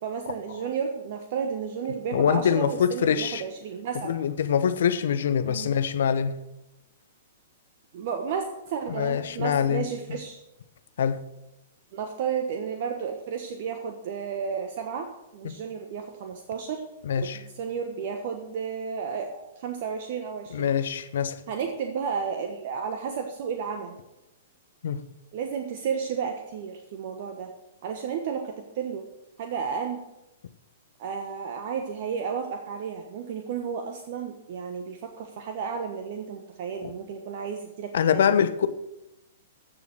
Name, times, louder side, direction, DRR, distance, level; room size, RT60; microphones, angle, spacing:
voice 1, 0.0-4.1 5.4-5.7 7.9-10.4 11.9-16.8 17.2-20.7 21.5-24.0 25.3-27.5 27.8-29.1 29.4-30.1 31.0-38.4, right 6 dB, 50° right, 1.1 m, -32 dB
voice 2, 2.1-3.4 4.0-6.3 8.9-9.9 11.0-11.2 15.4-15.6 17.0-17.4 20.5-21.4 24.8-25.0 37.9-38.7, left 8 dB, 60° left, 0.9 m, -24 dB
14.5 x 6.9 x 6.2 m
figure-of-eight pair, 110°, 0 cm